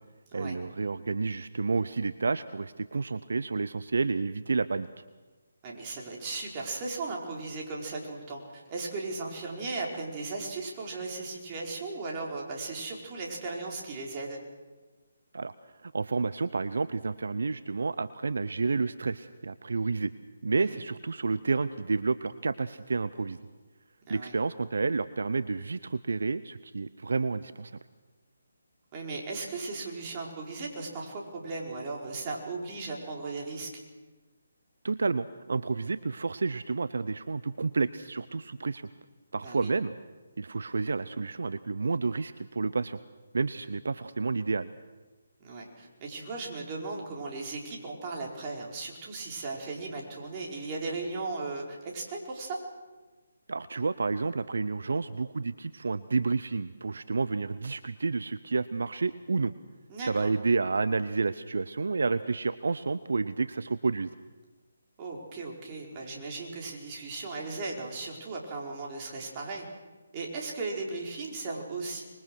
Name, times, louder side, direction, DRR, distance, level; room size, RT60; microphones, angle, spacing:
voice 1, 0.3-4.9 15.3-15.5 15.8-20.1 20.4-23.4 24.1-27.7 34.8-38.8 39.3-39.9 40.4-43.0 43.3-44.7 53.5-59.5 60.0-64.1, right 4 dB, 70° right, 14 dB, 0.7 m, -30 dB
voice 2, 5.6-14.4 20.6-20.8 24.1-24.3 28.9-33.7 39.4-39.7 45.4-52.6 59.9-60.3 65.0-69.7 70.1-72.0, right 3 dB, 30° right, -2 dB, 4.8 m, -37 dB
25.5 x 22.0 x 6.3 m, 1.3 s
figure-of-eight pair, 150°, 0 cm